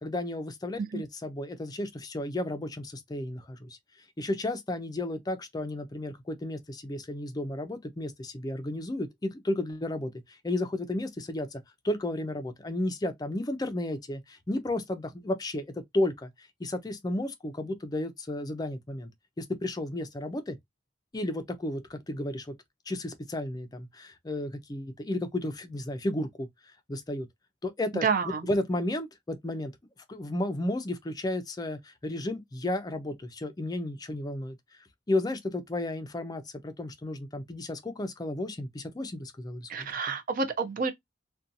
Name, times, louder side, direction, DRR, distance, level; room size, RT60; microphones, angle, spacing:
voice 1, 0.0-3.8 4.2-15.6 15.9-19.1 19.4-20.6 21.1-22.5 22.9-26.5 26.9-27.3 27.6-28.1 28.5-29.7 30.1-34.6 35.1-39.9, left 1 dB, 20° left, 0.4 m, -33 dB
voice 2, 28.0-28.5 39.7-40.9, right 5 dB, 45° right, 0.4 m, -29 dB
2.6 x 2.2 x 2.5 m
head